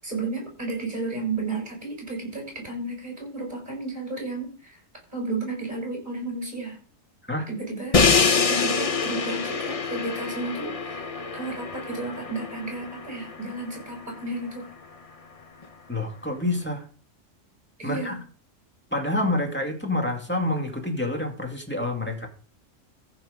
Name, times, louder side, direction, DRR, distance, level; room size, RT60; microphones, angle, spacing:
voice 1, 0.0-4.8 5.1-6.8 7.5-8.0 8.5-14.7 17.8-18.2, right 3 dB, 35° right, 0 dB, 6.4 m, -33 dB
Crash cymbal, 7.9-13.9, left 5 dB, 35° left, 0.6 m, -25 dB
voice 2, 15.9-16.8 17.8-18.2 18.9-22.3, left 1 dB, 10° left, 1 dB, 2.2 m, -27 dB
14.5 x 6.0 x 5.1 m, 0.39 s
omnidirectional pair, 1.3 m